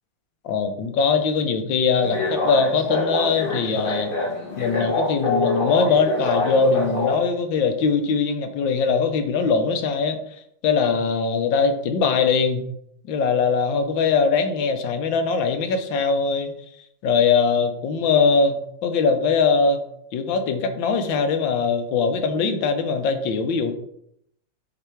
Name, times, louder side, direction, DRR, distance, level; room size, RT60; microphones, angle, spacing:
voice 1, 0.4-4.1 4.6-10.2 10.6-12.7 13.1-16.5 17.0-19.8 20.1-23.7, left 5 dB, 80° left, 7 dB, 1.5 m, -21 dB
sound 1, 2.0-7.2, left 2 dB, 30° left, 1.6 m, -25 dB
7.8 x 3.4 x 4.5 m, 0.74 s
omnidirectional pair, 2.1 m